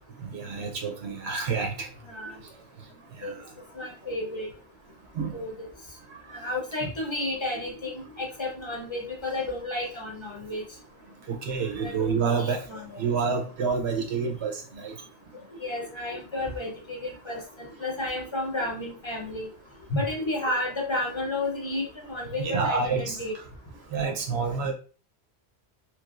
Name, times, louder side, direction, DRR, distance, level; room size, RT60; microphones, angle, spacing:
voice 1, 0.2-1.9 3.2-3.3 5.2-5.4 6.3-6.4 11.3-12.6 13.0-14.9 22.4-23.2 23.9-24.7, right 5 dB, 75° right, 2 dB, 0.9 m, -28 dB
voice 2, 3.7-4.5 5.3-5.5 6.3-10.6 11.8-13.0 15.6-19.5 19.9-23.3, left 2 dB, 30° left, -1 dB, 0.7 m, -32 dB
3.1 x 3.0 x 2.4 m, 0.37 s
omnidirectional pair, 1.1 m